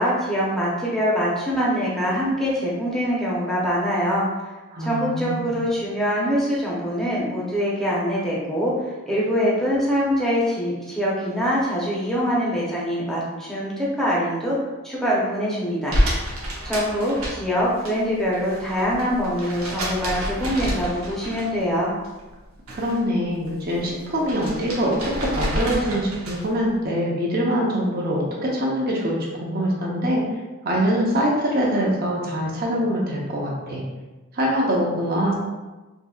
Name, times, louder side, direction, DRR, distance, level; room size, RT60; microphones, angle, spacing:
voice 1, 0.0-4.5 4.8-14.6 14.8-16.0 16.6-21.9, equal, ahead, -7 dB, 0.8 m, -24 dB
voice 2, 4.7-5.5 22.7-30.2 30.6-33.8 34.3-35.3, equal, 45° right, -3 dB, 0.8 m, -24 dB
sound 1, 15.9-17.9 18.2-21.7 22.0-23.0 23.3-26.6, equal, 90° right, 0.9 m, -28 dB
3.8 x 2.8 x 2.3 m, 1.2 s
head